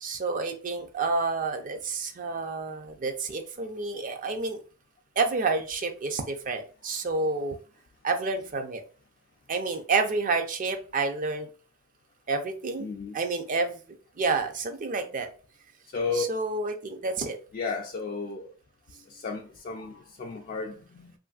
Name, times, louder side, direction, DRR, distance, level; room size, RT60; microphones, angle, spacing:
voice 1, 0.0-4.6 5.2-7.6 8.0-8.8 9.5-11.5 12.3-12.9 13.1-13.8 14.2-15.3 16.1-17.4, right 3 dB, 40° right, 0.4 m, -29 dB
voice 2, 12.8-13.2 15.9-16.2 17.5-18.5 19.1-21.1, left 4 dB, 40° left, 0.3 m, -33 dB
3.0 x 2.5 x 2.3 m
head